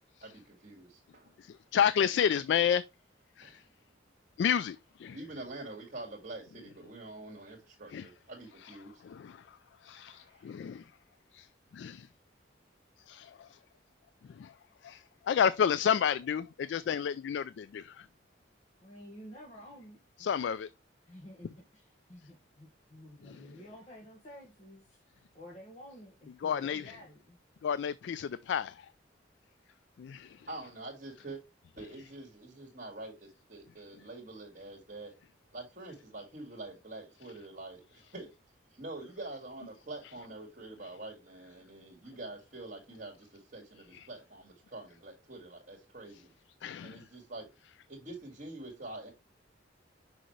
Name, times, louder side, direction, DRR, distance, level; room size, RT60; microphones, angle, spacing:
voice 1, 0.2-1.3 3.4-3.6 5.1-9.0 10.1-10.5 30.5-31.4 31.8-35.1 35.5-38.3 38.7-46.3 46.8-47.5 47.9-49.1, right 2 dB, 45° right, 1.8 m, -46 dB
voice 2, 1.4-2.8 3.4-3.6 4.4-5.2 7.9-8.1 8.6-10.9 11.3-12.1 13.0-13.6 14.2-14.6 14.8-18.1 20.2-20.7 23.2-23.5 26.4-27.0 27.6-28.9 30.0-30.5 43.9-44.1 46.6-47.1, left 8 dB, 70° left, 0.3 m, -31 dB
voice 3, 18.8-20.3 21.0-27.4, equal, 40° left, 1.5 m, -51 dB
6.3 x 5.6 x 3.1 m
head